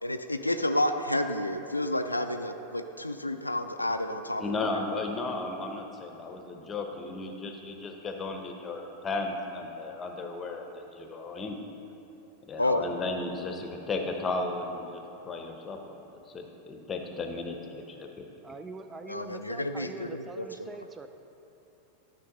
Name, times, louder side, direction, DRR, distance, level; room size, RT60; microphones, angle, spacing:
voice 1, 0.0-4.5 12.6-12.9 19.1-20.5, left 1 dB, 85° left, 7 dB, 0.3 m, -30 dB
voice 2, 4.4-11.6 12.5-18.2, left 3 dB, 20° left, 4 dB, 0.9 m, -35 dB
voice 3, 18.4-21.1, right 3 dB, 15° right, 8 dB, 0.3 m, -43 dB
12.0 x 5.2 x 3.9 m, 3.0 s
figure-of-eight pair, 90°, 0 cm